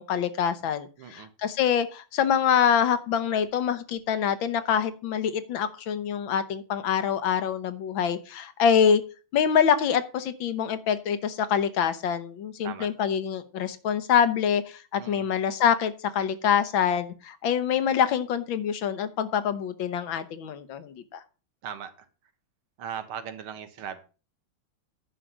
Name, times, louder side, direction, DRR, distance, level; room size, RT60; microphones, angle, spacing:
voice 1, 0.0-9.0 9.3-21.2, left 8 dB, 75° left, 11 dB, 1.6 m, -25 dB
voice 2, 1.0-1.3 12.6-12.9 15.0-15.3 21.6-22.1 22.8-24.0, right 8 dB, 90° right, 9 dB, 2.1 m, -38 dB
10.0 x 5.7 x 6.0 m, 0.35 s
omnidirectional pair, 2.3 m